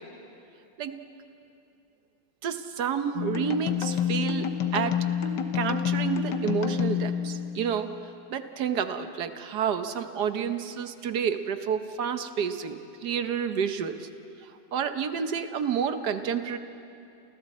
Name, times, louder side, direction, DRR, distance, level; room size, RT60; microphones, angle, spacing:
voice 1, 2.4-5.0 5.5-8.0 8.3-14.1 14.4-16.6, right 7 dB, 70° right, 9 dB, 1.5 m, -30 dB
sound 1, 3.2-8.0, left 8 dB, 80° left, 1.8 m, -28 dB
29.5 x 28.0 x 4.3 m, 2.7 s
omnidirectional pair, 1.9 m